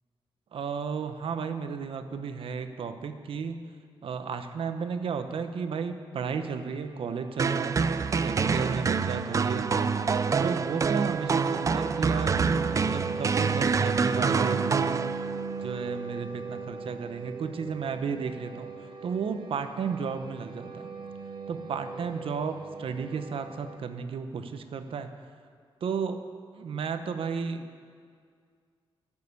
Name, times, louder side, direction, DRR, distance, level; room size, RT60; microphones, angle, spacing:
voice 1, 0.5-3.6 4.0-7.8 8.2-9.9 10.4-15.1 15.6-18.7 19.0-20.9 21.5-25.1 25.8-26.2 26.6-27.7, right 6 dB, 75° right, 8 dB, 0.8 m, -33 dB
sound 1, 6.4-23.8, right 4 dB, 55° right, 1.2 m, -39 dB
sound 2, 7.4-15.5, right 5 dB, 35° right, 0.4 m, -27 dB
13.5 x 6.7 x 9.5 m, 2.1 s
wide cardioid pair, 145°, 9 cm